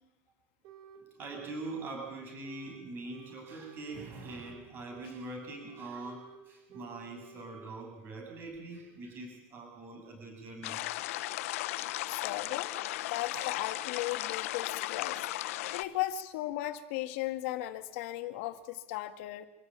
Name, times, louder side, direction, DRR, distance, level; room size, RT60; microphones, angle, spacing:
sound 1, 0.6-1.0 1.3-2.8 3.1-4.6 4.9-6.4 6.7-7.6, right 6 dB, 50° right, 5.0 m, -53 dB
voice 1, 1.2-10.8 13.3-13.6 15.7-15.9, right 2 dB, 30° right, 2 dB, 7.8 m, -43 dB
sound 2, 10.6-15.8, left 17 dB, 85° left, 0.9 m, -36 dB
voice 2, 12.1-12.7 13.1-15.3 15.7-19.5, left 15 dB, 65° left, 9 dB, 2.1 m, -36 dB
26.5 x 16.0 x 9.0 m, 0.98 s
supercardioid pair, 165°, 7 cm